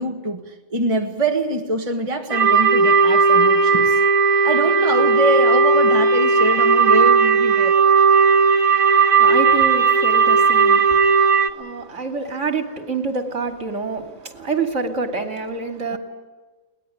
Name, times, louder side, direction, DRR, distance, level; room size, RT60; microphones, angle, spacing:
voice 1, 0.0-4.0 4.4-7.8 15.9-16.0, right 1 dB, 25° right, 3 dB, 1.7 m, -24 dB
sound 1, 2.3-11.5, right 5 dB, 85° right, 1.9 m, -15 dB
voice 2, 9.2-16.0, right 4 dB, 60° right, 5 dB, 3.0 m, -27 dB
22.0 x 19.5 x 9.3 m, 1.3 s
omnidirectional pair, 1.4 m